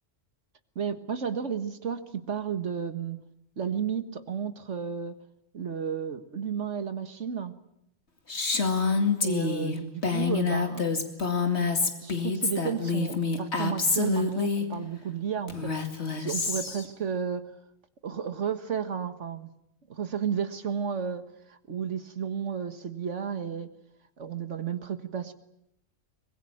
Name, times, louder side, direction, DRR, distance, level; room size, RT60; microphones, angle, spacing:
voice 1, 0.7-3.2 3.6-5.2 5.5-7.5 9.2-10.8 12.0-15.7 16.2-17.4 18.0-19.5 19.9-21.2 21.5-23.7 24.2-25.3, right 7 dB, 65° right, 10 dB, 1.8 m, -32 dB
Female speech woman speaking, 8.3-14.7 15.5-16.9, left 4 dB, 60° left, 2.6 m, -27 dB
24.0 x 22.0 x 8.7 m, 0.78 s
omnidirectional pair, 1.3 m